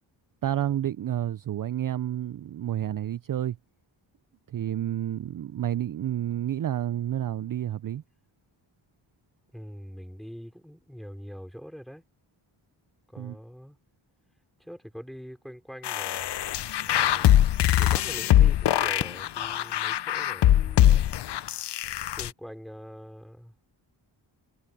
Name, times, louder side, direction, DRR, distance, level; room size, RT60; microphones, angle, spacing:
voice 1, 0.4-3.6 4.5-8.0 13.2-13.4, right 11 dB, 45° right, 0.5 m, -30 dB
voice 2, 9.5-12.0 13.1-13.8 14.6-16.3 16.8-17.4 17.8-21.1 22.1-23.5, equal, ahead, 5.3 m, -44 dB
sound 1, 15.8-22.3, left 12 dB, 60° left, 0.6 m, -22 dB
cardioid pair, 75°, 48 cm